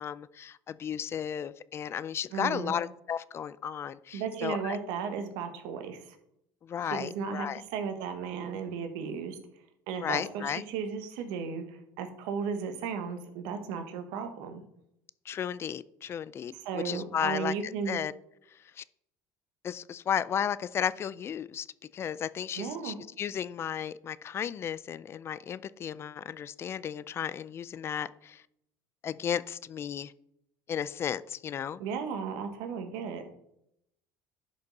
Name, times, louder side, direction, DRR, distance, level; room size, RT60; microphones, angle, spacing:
voice 1, 0.0-4.8 6.6-7.6 10.0-10.6 15.3-17.5 17.9-18.1 18.8-18.9 19.6-21.7 21.9-28.4 29.0-30.1 30.7-31.8, left 8 dB, 35° left, 18 dB, 0.4 m, -34 dB
voice 2, 2.3-2.7 4.1-6.1 6.8-9.4 9.9-14.6 16.5-18.0 22.6-23.0 31.8-33.2, right 6 dB, 80° right, 7 dB, 1.3 m, -35 dB
11.0 x 5.2 x 4.1 m, 0.77 s
supercardioid pair, 110°, 7 cm